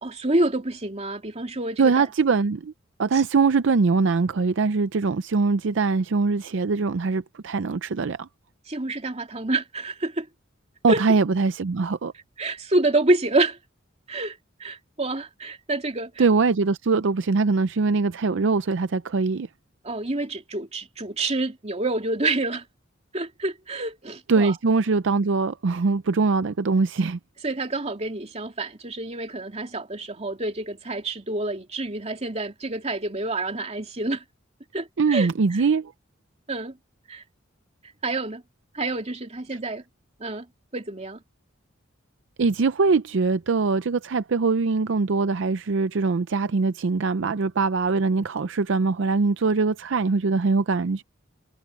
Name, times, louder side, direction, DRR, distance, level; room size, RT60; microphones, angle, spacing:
voice 1, 0.0-2.1 3.1-3.2 8.7-10.3 10.9-11.0 12.4-13.6 14.1-16.2 19.8-22.6 23.1-24.5 27.4-34.2 34.7-35.6 36.5-36.8 37.1-37.2 38.0-38.4 38.7-39.8 40.2-40.5 40.7-41.2, right 2 dB, 35° right, 2.8 m, -27 dB
voice 2, 1.8-2.7 3.0-8.3 10.8-12.1 16.2-19.5 24.3-27.2 35.0-35.9 42.4-51.0, right 4 dB, 65° right, 0.5 m, -22 dB
head